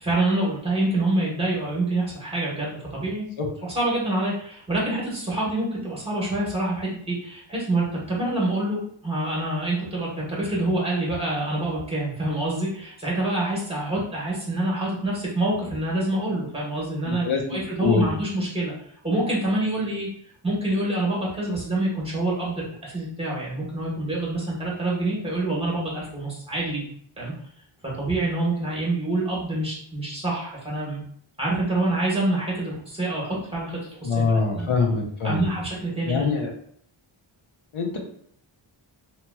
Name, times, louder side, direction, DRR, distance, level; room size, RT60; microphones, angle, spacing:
voice 1, 0.0-3.3 3.7-18.7 19.0-20.1 20.4-26.9 27.2-27.3 27.8-31.0 31.4-34.6 35.2-36.2, right 2 dB, 10° right, -5 dB, 1.3 m, -26 dB
voice 2, 17.1-18.1 34.0-35.5 36.0-36.5 37.7-38.0, left 4 dB, 75° left, 2 dB, 0.8 m, -24 dB
2.9 x 2.9 x 2.2 m, 0.64 s
wide cardioid pair, 95°, 49 cm